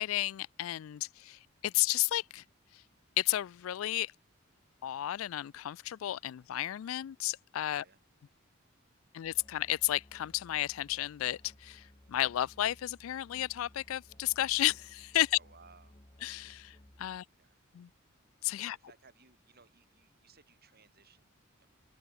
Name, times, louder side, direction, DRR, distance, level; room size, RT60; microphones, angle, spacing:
voice 1, 0.0-2.4 2.7-2.8 3.2-4.1 4.8-7.8 9.1-15.4 16.2-17.2 17.7-17.9 18.4-18.8, left 14 dB, 85° left, 0.3 m, -33 dB
Musical instrument, 9.2-17.2, left 1 dB, 25° left, 2.6 m, -59 dB
voice 2, 15.3-16.0 17.3-17.6 18.6-21.7, right 5 dB, 50° right, 6.9 m, -62 dB
open air
head